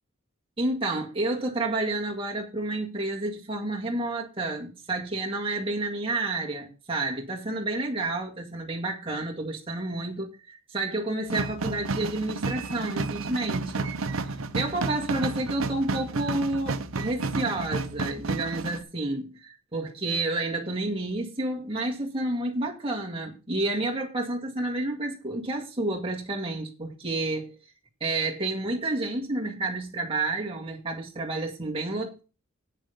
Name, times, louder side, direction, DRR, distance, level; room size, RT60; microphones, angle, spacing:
voice 1, 0.6-13.9 14.2-27.6 28.0-32.2, right 2 dB, 25° right, 2.0 m, -30 dB
sound 1, 11.3-18.8, right 3 dB, 75° right, 0.8 m, -31 dB
9.2 x 6.8 x 5.7 m
head